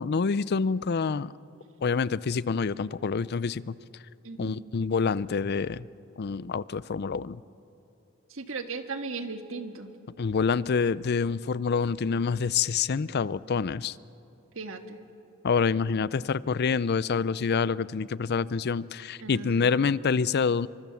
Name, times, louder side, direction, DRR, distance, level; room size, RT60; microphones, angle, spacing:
voice 1, 0.0-1.3 1.8-3.7 4.4-5.9 6.2-7.4 10.2-14.0 15.4-20.7, left 5 dB, 50° left, 19 dB, 0.5 m, -27 dB
voice 2, 4.2-4.6 8.3-9.9 14.6-15.0 19.2-19.9, right 4 dB, 65° right, 7 dB, 1.7 m, -37 dB
26.0 x 24.5 x 7.1 m, 3.0 s
head